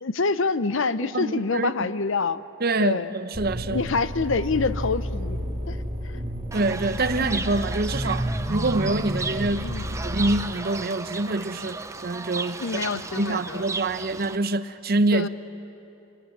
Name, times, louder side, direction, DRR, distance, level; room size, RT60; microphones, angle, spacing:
voice 1, 0.0-2.4 2.8-3.1 3.7-5.4 5.7-6.2 7.2-7.3 9.6-9.9 12.6-13.6 15.1-15.3, left 4 dB, 60° left, 0.7 m, -26 dB
voice 2, 1.0-1.7 2.6-3.9 6.5-9.8 10.0-15.3, right 2 dB, 45° right, 0.7 m, -26 dB
sound 1, 3.3-10.4, equal, 30° right, 2.2 m, -32 dB
Fowl / Bird, 6.5-14.4, right 2 dB, 15° right, 0.6 m, -33 dB
25.5 x 18.0 x 9.9 m
head